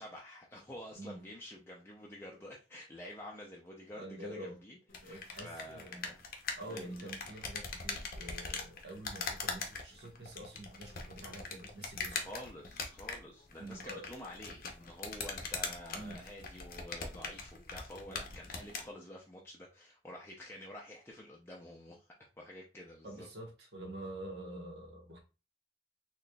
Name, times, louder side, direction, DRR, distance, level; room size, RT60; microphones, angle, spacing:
voice 1, 0.0-6.4 6.6-7.1 12.1-23.3, left 1 dB, 15° left, 0.5 m, -49 dB
voice 2, 4.0-4.6 5.0-6.1 6.6-12.2 13.6-14.1 15.9-16.2 23.0-25.2, right 1 dB, 75° right, 1.2 m, -47 dB
sound 1, 4.9-18.9, left 4 dB, 55° left, 0.7 m, -42 dB
4.0 x 3.1 x 2.3 m
head